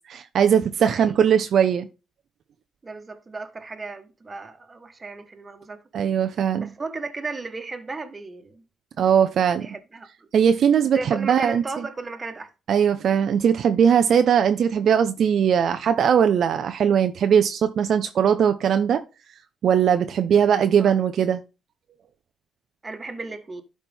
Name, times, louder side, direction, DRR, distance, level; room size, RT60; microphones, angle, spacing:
voice 1, 0.1-1.9 5.9-6.7 9.0-9.7 10.3-11.6 12.7-19.0 19.6-21.4, right 8 dB, 65° right, 0.5 m, -20 dB
voice 2, 0.8-1.1 2.8-5.8 6.6-8.6 9.6-10.3 10.9-12.5 20.8-21.0 22.8-23.6, right 3 dB, 30° right, 1.4 m, -35 dB
11.5 x 4.2 x 3.6 m
cardioid pair, 90°, 0 cm